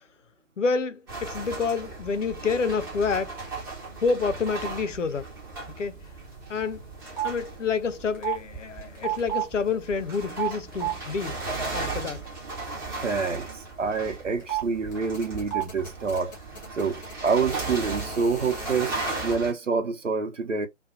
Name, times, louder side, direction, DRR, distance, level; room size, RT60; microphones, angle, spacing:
voice 1, 0.6-3.4 4.0-5.3 5.8-6.0 6.5-6.8 7.2-11.4 11.7-12.3, left 5 dB, 75° left, 0.6 m, -28 dB
sound 1, 1.1-19.5, right 3 dB, 20° right, 0.8 m, -37 dB
sound 2, 6.1-6.6 6.8-7.3 8.1-8.4 8.9-9.5 10.3-10.9 14.4-14.6 14.9-19.3, right 10 dB, 15° left, 0.7 m, -32 dB
voice 2, 13.0-16.3 16.7-20.7, right 5 dB, 75° right, 0.9 m, -27 dB
2.4 x 2.2 x 2.4 m
figure-of-eight pair, 145°, 37 cm